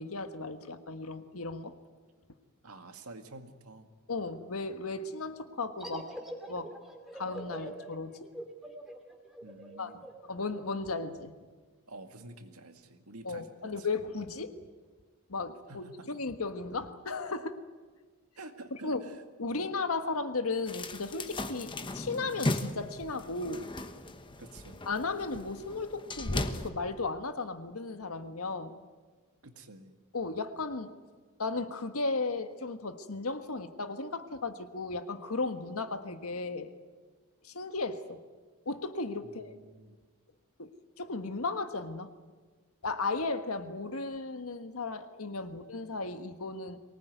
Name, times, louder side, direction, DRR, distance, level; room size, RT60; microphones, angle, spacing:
voice 1, 0.0-1.7 4.1-6.1 6.5-6.7 7.1-8.2 9.8-9.9 10.3-11.3 13.2-14.5 15.3-17.6 18.7-19.1 19.4-23.7 24.8-28.7 30.1-30.9 31.4-36.7 37.4-38.2 38.6-39.5 40.6-40.7 41.0-42.1 42.8-46.8, left 3 dB, 80° left, 9 dB, 1.5 m, -35 dB
voice 2, 2.6-3.9 9.4-10.1 11.9-13.9 15.7-16.2 18.4-19.2 19.5-19.7 24.0-24.9 29.4-30.0 39.2-40.0, right 2 dB, 85° right, 7 dB, 2.0 m, -49 dB
sound 1, 5.8-11.1, equal, ahead, 2.4 m, -44 dB
sound 2, 20.7-26.7, left 2 dB, 20° left, 1.1 m, -37 dB
23.5 x 19.0 x 9.4 m, 1.4 s
head